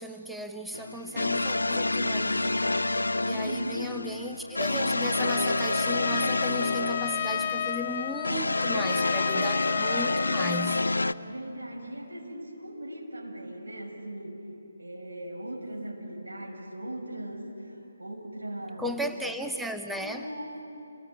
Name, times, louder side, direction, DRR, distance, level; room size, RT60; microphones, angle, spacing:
voice 1, 0.0-2.6 3.2-10.8 18.8-20.3, equal, ahead, 4 dB, 0.7 m, -36 dB
sound 1, 0.7-11.1, left 2 dB, 80° left, 0.7 m, -28 dB
voice 2, 3.2-3.9 11.2-14.4 14.8-19.0 20.0-20.6, right 1 dB, 80° right, 0 dB, 6.8 m, -39 dB
Trumpet, 5.1-11.0, left 8 dB, 35° left, 0.6 m, -32 dB
28.5 x 19.0 x 10.0 m, 3.0 s
figure-of-eight pair, 145°, 0 cm